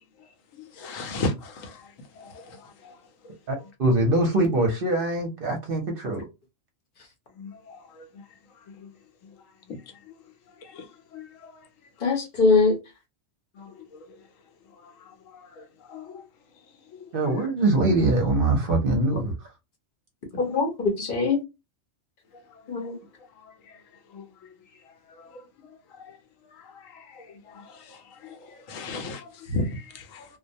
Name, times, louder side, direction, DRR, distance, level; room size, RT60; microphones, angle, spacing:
voice 1, 0.8-1.8 2.2-2.6 2.8-3.0 7.4-8.1 9.7-9.8 10.7-10.8 11.1-11.5 13.6-13.7 15.6-15.7 15.9-16.2 24.1-24.2 26.9-27.0 27.5-28.0 28.2-28.4 28.7-30.2, left 2 dB, 80° left, 1.0 m, -34 dB
voice 2, 3.5-6.2 17.1-19.3, right 2 dB, 55° right, 0.7 m, -23 dB
voice 3, 12.0-12.7 20.4-21.4 22.7-22.9, left 4 dB, 50° left, 0.8 m, -22 dB
2.3 x 2.1 x 2.6 m
omnidirectional pair, 1.3 m